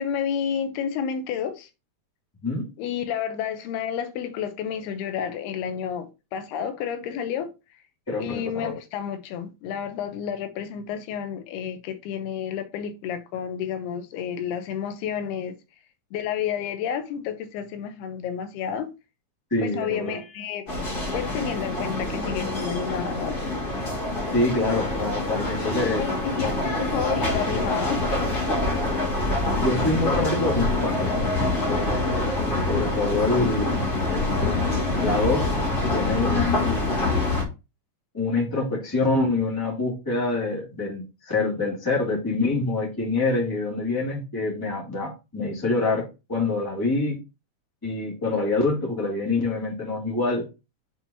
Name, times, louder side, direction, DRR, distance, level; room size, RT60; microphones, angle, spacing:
voice 1, 0.0-1.7 2.8-7.5 8.2-15.6 16.1-18.9 19.6-20.7 21.1-23.4 26.0-28.0, left 8 dB, 90° left, 2.9 m, -30 dB
voice 2, 8.1-8.7 19.5-20.2 24.3-26.0 29.6-31.1 31.7-32.1 32.7-34.7 35.0-35.5 35.9-36.8 38.1-47.2 47.8-50.5, left 3 dB, 10° left, 1.7 m, -26 dB
sound 1, 20.7-37.4, left 2 dB, 30° left, 2.1 m, -25 dB
7.4 x 4.5 x 2.9 m
omnidirectional pair, 4.5 m